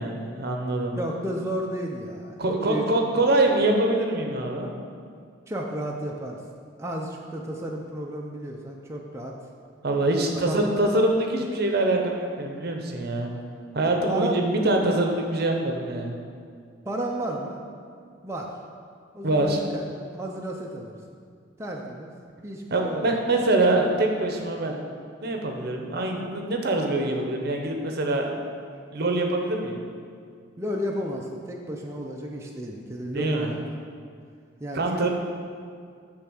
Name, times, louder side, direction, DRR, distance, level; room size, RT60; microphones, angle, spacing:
voice 1, 0.0-1.0 2.4-4.7 9.8-13.3 13.7-16.2 19.2-19.6 22.7-24.8 25.2-28.3 28.9-29.8 33.1-33.5 34.7-35.1, right 2 dB, 60° right, 2 dB, 0.8 m, -24 dB
voice 2, 1.0-3.1 5.5-6.4 6.8-9.3 10.4-10.7 14.1-14.4 16.8-17.6 18.2-18.5 19.1-21.2 21.6-22.1 22.4-23.2 30.6-33.6 34.6-35.1, right 1 dB, 15° right, -1 dB, 0.5 m, -32 dB
8.8 x 3.4 x 6.3 m, 2.2 s
head